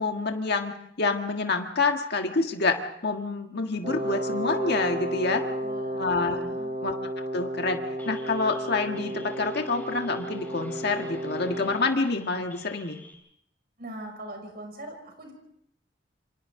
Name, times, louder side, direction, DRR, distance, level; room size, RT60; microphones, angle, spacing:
voice 1, 0.0-5.4 6.0-6.5 6.8-7.8 8.0-13.0, left 3 dB, 60° left, 4 dB, 1.7 m, -27 dB
Wind instrument woodwind instrument, 3.8-11.9, right 1 dB, 35° right, 1.8 m, -33 dB
voice 2, 5.6-6.1 6.5-6.7 13.8-15.3, right 1 dB, 55° right, 3 dB, 5.8 m, -41 dB
sound 1, 8.0-13.1, left 2 dB, 10° left, 3.5 m, -51 dB
27.5 x 25.5 x 3.8 m, 0.70 s
head